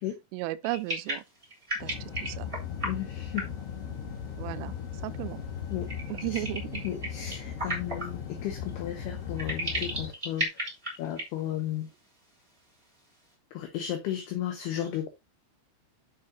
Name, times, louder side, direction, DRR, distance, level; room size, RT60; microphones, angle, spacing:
voice 1, 0.3-1.2 1.8-2.5 4.4-4.7 5.0-5.4 6.1-6.8, right 18 dB, 85° right, 3.1 m, -35 dB
sound 1, 0.6-2.9 3.3-3.6 5.9-8.1 8.7-8.8 9.4-11.3 11.6-11.7 11.9-12.0, right 1 dB, 10° right, 1.7 m, -34 dB
sound 2, 1.8-10.1, left 7 dB, 60° left, 1.6 m, -38 dB
voice 2, 2.8-3.4 5.7-5.9 6.3-6.5 6.8-10.5 11.0-11.9 13.5-15.1, left 11 dB, 80° left, 2.4 m, -34 dB
8.6 x 6.4 x 2.8 m
omnidirectional pair, 5.7 m